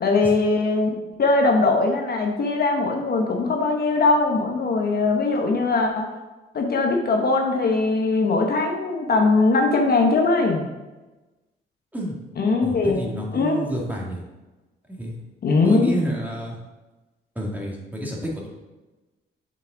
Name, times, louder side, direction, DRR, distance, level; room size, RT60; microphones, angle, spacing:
voice 1, 0.0-6.1 6.5-10.6 12.4-13.0 13.3-13.6 15.4-15.9, left 3 dB, 50° left, 2 dB, 1.1 m, -20 dB
voice 2, 12.6-14.2 14.9-15.2 15.6-16.6 17.4-18.5, equal, 10° right, -3 dB, 2.0 m, -30 dB
7.0 x 5.5 x 3.9 m, 1.1 s
cardioid pair, 90°, 20 cm